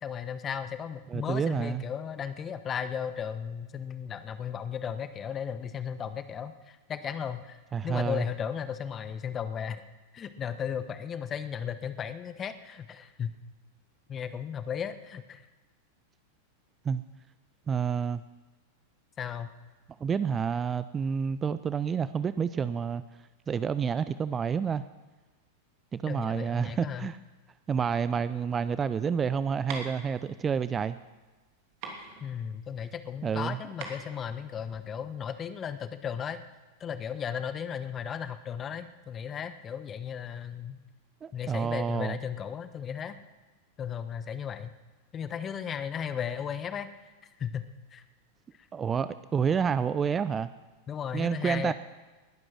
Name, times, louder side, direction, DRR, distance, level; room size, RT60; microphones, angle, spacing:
voice 1, 0.0-7.6 7.8-9.8 10.1-13.3 14.1-15.4 19.2-19.5 26.1-27.1 32.2-36.4 36.8-40.8 41.3-43.2 43.8-44.7 45.1-46.9 47.4-48.0 50.9-51.7, left 8 dB, 25° left, 12 dB, 1.1 m, -35 dB
voice 2, 1.1-1.9 7.7-8.3 16.8-17.0 17.7-18.2 20.0-23.0 23.5-24.8 25.9-27.2 27.7-31.0 33.2-33.6 41.2-42.2 48.7-50.5 51.1-51.7, right 6 dB, 20° right, 15 dB, 0.5 m, -29 dB
sound 1, 28.5-35.1, right 4 dB, 45° right, 2.9 m, -44 dB
20.0 x 11.0 x 6.1 m, 1.2 s
figure-of-eight pair, 90°, 0 cm